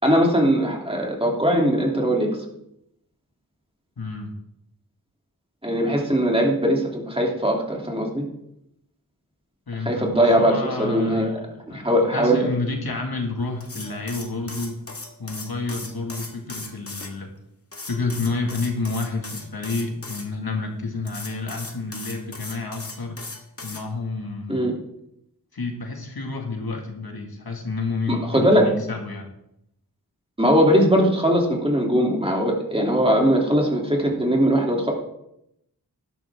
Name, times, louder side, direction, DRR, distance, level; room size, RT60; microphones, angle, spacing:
voice 1, 0.0-2.3 5.6-8.2 9.8-11.3 11.7-12.4 24.5-24.7 28.1-28.7 30.4-34.9, equal, 15° right, -1 dB, 2.9 m, -20 dB
voice 2, 4.0-4.3 9.7-14.8 15.2-17.3 17.9-23.2 23.6-24.7 25.5-29.3, left 3 dB, 80° left, 2 dB, 2.0 m, -30 dB
sound 1, 13.6-17.1 17.7-20.2 21.0-23.8, left 2 dB, 40° left, 1.8 m, -37 dB
12.5 x 12.5 x 3.6 m, 0.80 s
wide cardioid pair, 70°, 36 cm